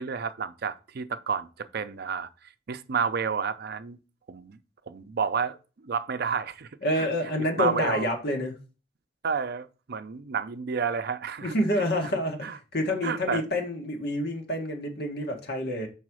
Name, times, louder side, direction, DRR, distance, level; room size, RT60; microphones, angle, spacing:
voice 1, 0.0-2.3 2.7-4.0 4.3-4.6 4.9-5.6 5.8-6.7 7.0-7.1 7.6-8.1 9.2-11.5 12.4-12.6 13.0-13.4, right 6 dB, 55° right, 0.5 m, -30 dB
voice 2, 6.8-8.5 11.4-15.9, left 1 dB, 60° left, 1.7 m, -28 dB
5.6 x 4.2 x 6.2 m
head